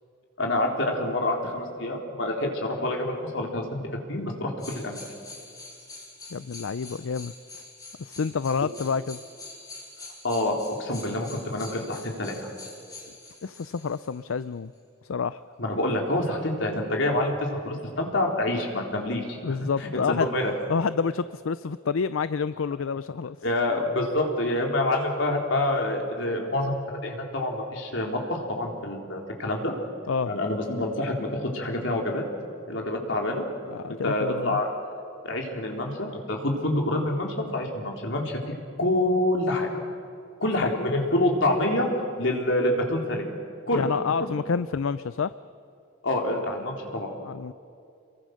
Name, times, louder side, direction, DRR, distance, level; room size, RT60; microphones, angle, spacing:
voice 1, 0.4-3.8 4.1-5.0 10.2-12.5 15.6-17.3 17.6-20.5 23.4-29.7 30.3-32.2 32.7-33.4 33.9-34.7 35.2-38.4 38.8-39.7 40.4-41.9 42.2-43.2 43.7-43.9 46.0-47.1, left 1 dB, 65° left, 1 dB, 3.8 m, -27 dB
sound 1, 4.6-14.2 14.7-14.8, left 3 dB, 20° left, 4.5 m, -45 dB
voice 2, 6.3-7.3 8.0-9.2 13.4-14.7 15.1-15.4 19.4-20.3 20.7-23.4 30.1-30.3 33.7-34.6 43.7-45.3 47.2-47.5, left 5 dB, 85° left, 15 dB, 0.5 m, -28 dB
28.5 x 23.0 x 6.5 m, 2.4 s
head